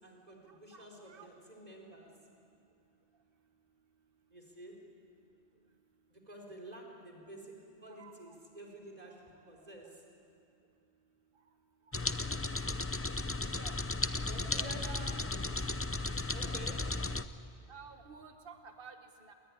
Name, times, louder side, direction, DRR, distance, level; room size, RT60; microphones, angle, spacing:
voice 1, 0.0-2.1 4.3-4.8 6.1-7.5 7.8-9.8 14.2-15.5 16.3-16.8, right 1 dB, 35° right, -1 dB, 4.5 m, -50 dB
voice 2, 0.7-1.3 7.9-8.1 12.0-12.1 13.6-13.8 14.6-15.2 17.7-19.3, right 5 dB, 55° right, 6 dB, 1.6 m, -52 dB
sound 1, 11.9-17.3, left 2 dB, 20° left, 0.4 m, -35 dB
28.0 x 21.5 x 9.9 m, 2.6 s
omnidirectional pair, 1.1 m